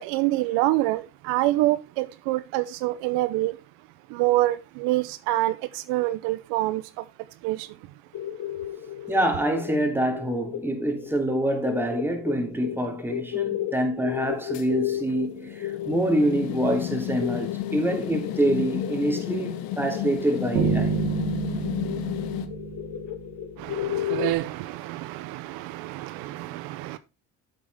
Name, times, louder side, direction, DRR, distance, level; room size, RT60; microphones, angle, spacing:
voice 1, 0.0-3.6 4.1-7.1 7.4-7.8 23.6-27.0, right 17 dB, 80° right, 0.8 m, -26 dB
sound 1, 8.1-24.3, left 11 dB, 55° left, 1.4 m, -34 dB
voice 2, 9.1-21.0, right 1 dB, 5° right, 3.0 m, -26 dB
sound 2, 14.5-22.5, left 11 dB, 75° left, 1.3 m, -33 dB
sound 3, 20.6-23.6, right 5 dB, 65° right, 3.6 m, -28 dB
9.2 x 8.1 x 3.5 m
supercardioid pair, 90°, 36 cm